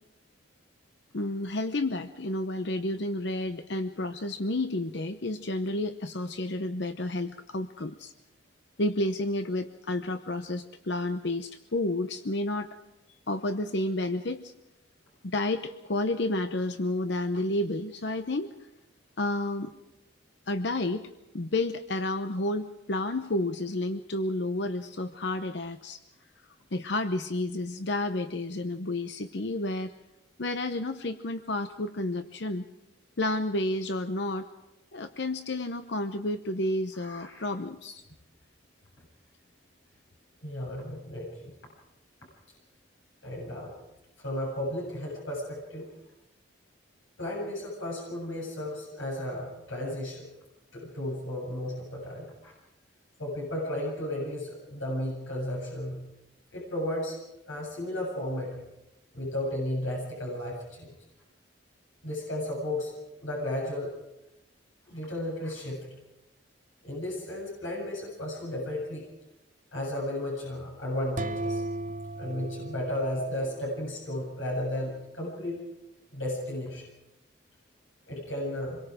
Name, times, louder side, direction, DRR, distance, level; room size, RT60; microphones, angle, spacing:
voice 1, 1.1-8.1 8.8-12.8 13.3-14.5 15.2-18.5 19.2-19.7 20.5-21.1 21.3-26.0 26.7-29.9 30.4-32.7 33.2-34.5 34.9-38.0, left 2 dB, 60° left, 9 dB, 0.8 m, -31 dB
voice 2, 36.9-37.5 40.4-41.5 43.2-43.7 44.2-45.9 47.2-50.3 50.7-52.5 53.2-56.1 56.5-57.2 57.5-58.6 59.1-60.9 62.0-62.9 63.2-63.9 64.9-65.9 66.8-69.0 69.7-71.6 72.2-75.6 76.1-76.8 78.1-78.8, left 1 dB, 85° left, -3 dB, 7.8 m, -34 dB
sound 1, 71.2-73.9, right 2 dB, 40° right, 0.7 m, -36 dB
26.5 x 22.5 x 5.0 m, 0.94 s
head